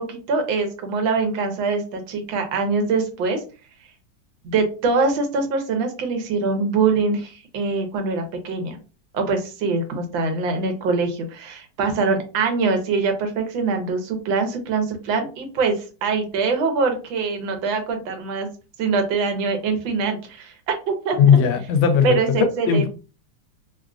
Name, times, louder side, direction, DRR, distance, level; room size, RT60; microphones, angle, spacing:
voice 1, 0.0-3.4 4.4-8.8 9.1-15.7 16.0-18.5 18.8-20.5 20.9-21.2 22.0-22.9, right 4 dB, 80° right, 5 dB, 1.5 m, -23 dB
voice 2, 21.1-22.2 22.7-22.9, left 7 dB, 85° left, 8 dB, 1.4 m, -17 dB
3.6 x 2.4 x 2.3 m, 0.33 s
omnidirectional pair, 2.1 m